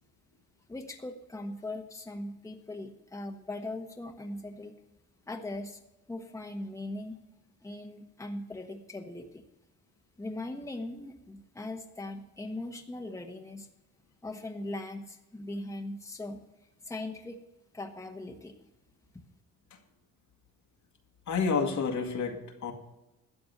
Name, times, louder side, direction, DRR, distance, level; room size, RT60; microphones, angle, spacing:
voice 1, 0.7-4.8 5.3-5.8 6.1-7.2 7.6-9.4 10.2-13.7 14.2-16.4 16.8-17.4 17.7-18.5, left 2 dB, 10° left, 3 dB, 1.2 m, -40 dB
voice 2, 21.3-22.7, left 5 dB, 70° left, 3 dB, 1.9 m, -29 dB
12.5 x 7.8 x 6.6 m, 0.98 s
cardioid pair, 90°, 30 cm